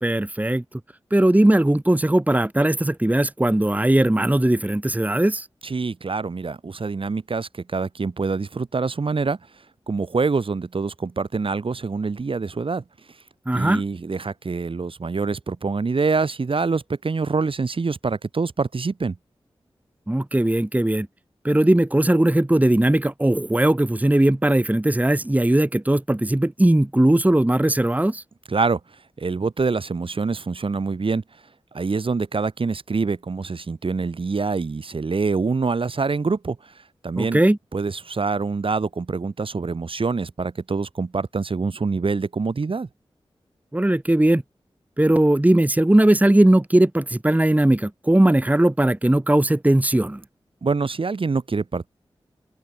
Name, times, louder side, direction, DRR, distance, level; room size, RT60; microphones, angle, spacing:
voice 1, 0.0-0.6 1.1-5.5 13.5-13.8 20.1-21.1 21.4-28.2 37.2-37.6 43.7-44.4 45.0-50.2, right 1 dB, 15° right, 1.5 m, -19 dB
voice 2, 5.6-9.4 9.9-12.8 13.5-19.2 28.5-28.8 29.2-31.2 31.7-36.7 37.0-37.4 37.7-42.9 50.6-51.9, right 4 dB, 60° right, 3.5 m, -25 dB
cardioid pair, 45°, 10 cm